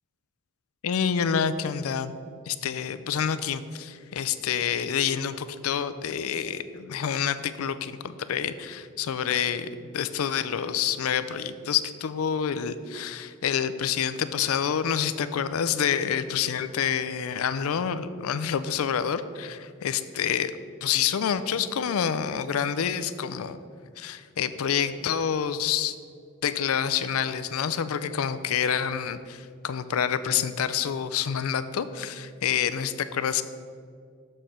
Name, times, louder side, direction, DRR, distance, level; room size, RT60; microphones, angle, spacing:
voice 1, 0.8-2.1 2.5-20.5 20.8-23.6 24.0-26.0 26.4-33.4, left 8 dB, 90° left, 13 dB, 0.4 m, -28 dB
7.2 x 4.4 x 6.4 m, 2.1 s
head